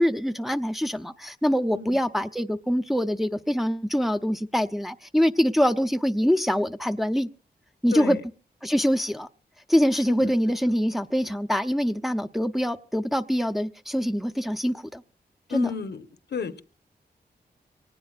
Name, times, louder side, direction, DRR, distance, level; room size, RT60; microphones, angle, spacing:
voice 1, 0.0-7.3 7.8-8.2 8.6-9.3 9.7-15.0 15.5-15.7, equal, ahead, 0.7 m, -24 dB
voice 2, 15.5-16.0 16.3-16.6, left 6 dB, 80° left, 1.2 m, -32 dB
24.5 x 18.5 x 2.5 m
cardioid pair, 60°, 17 cm